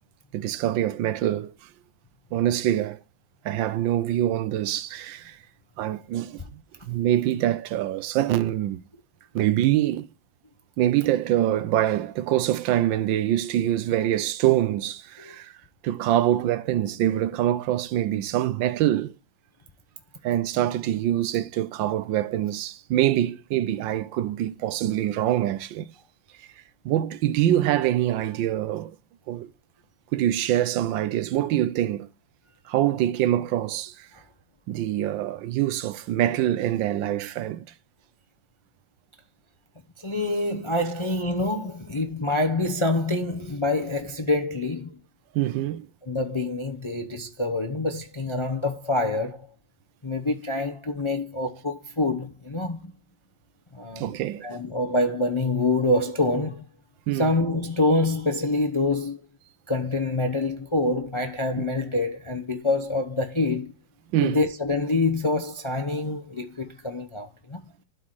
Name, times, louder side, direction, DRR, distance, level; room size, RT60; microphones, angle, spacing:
voice 1, 0.3-1.5 2.3-3.0 3.4-5.4 5.8-8.8 9.3-10.1 10.8-15.5 15.8-19.1 20.2-25.9 26.8-29.0 29.3-29.5 30.1-32.1 32.7-34.1 34.7-37.7 45.3-45.9 54.0-54.5 57.1-57.3 64.1-64.4, right 12 dB, 80° right, 1.4 m, -25 dB
voice 2, 40.0-45.0 46.0-49.5 50.0-52.9 53.7-54.2 54.4-56.6 57.1-59.2 59.7-63.7 64.2-67.6, left 2 dB, 30° left, 0.5 m, -26 dB
12.0 x 4.8 x 4.0 m
omnidirectional pair, 2.0 m